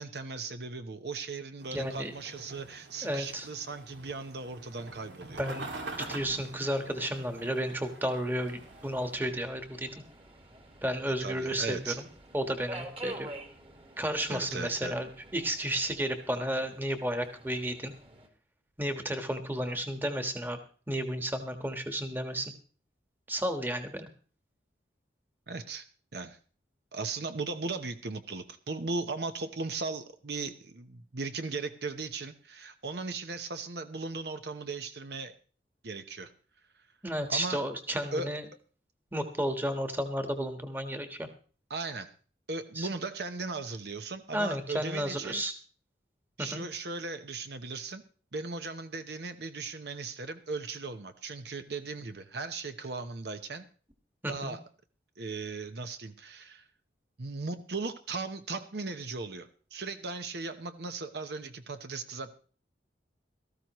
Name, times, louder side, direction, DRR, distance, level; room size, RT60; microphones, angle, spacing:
voice 1, 0.0-5.4 11.0-12.0 14.3-15.0 25.5-25.8 26.1-26.4 26.9-35.3 35.8-36.3 37.3-37.6 38.1-38.3 41.7-42.1 42.5-45.4 46.4-48.0 48.3-53.6 54.3-54.6 55.2-56.7 57.2-62.4, right 3 dB, 65° right, 9 dB, 0.9 m, -37 dB
sound 1, 1.6-9.2, right 2 dB, 90° right, 2.2 m, -45 dB
voice 2, 1.7-2.1 3.0-3.5 5.4-5.6 6.0-9.9 10.8-12.0 12.3-13.3 14.0-17.9 18.8-20.6 20.9-22.5 23.3-24.1 37.0-38.4 39.1-41.3 42.7-42.9 44.3-45.5 46.4-46.6 54.2-54.5, right 1 dB, 10° right, 7 dB, 1.4 m, -32 dB
Subway metro underground, 8.4-18.3, right 1 dB, 30° right, 1.9 m, -48 dB
18.0 x 14.0 x 3.1 m, 0.40 s
head